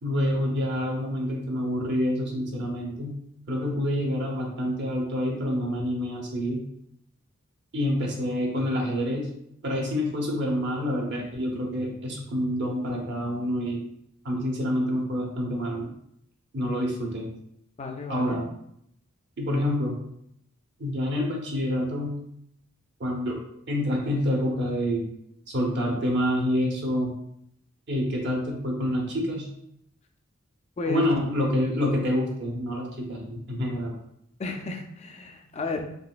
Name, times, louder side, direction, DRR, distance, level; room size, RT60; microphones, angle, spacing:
voice 1, 0.0-3.1 3.5-6.6 7.7-9.3 9.6-13.8 14.2-15.9 16.5-17.3 18.1-18.5 19.4-19.9 20.8-22.1 23.0-23.4 23.7-25.1 25.5-27.1 27.9-29.5 30.9-33.9, equal, 55° right, 0 dB, 0.9 m, -27 dB
voice 2, 17.8-18.4 30.8-31.1 34.4-35.8, left 3 dB, 30° left, 3 dB, 0.4 m, -32 dB
3.9 x 3.1 x 2.4 m, 0.73 s
head